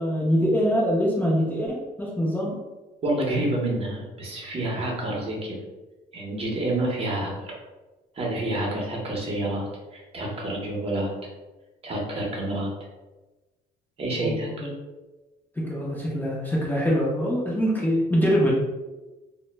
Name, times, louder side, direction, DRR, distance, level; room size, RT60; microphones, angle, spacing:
voice 1, 0.0-2.6 14.1-14.7 15.6-18.5, equal, 10° left, -6 dB, 0.5 m, -24 dB
voice 2, 3.0-5.6 6.1-7.5 8.1-11.1 11.8-12.7 14.0-14.7, right 1 dB, 35° right, -2 dB, 0.8 m, -28 dB
2.1 x 2.0 x 3.2 m, 1.1 s
cardioid pair, 110°, 17 cm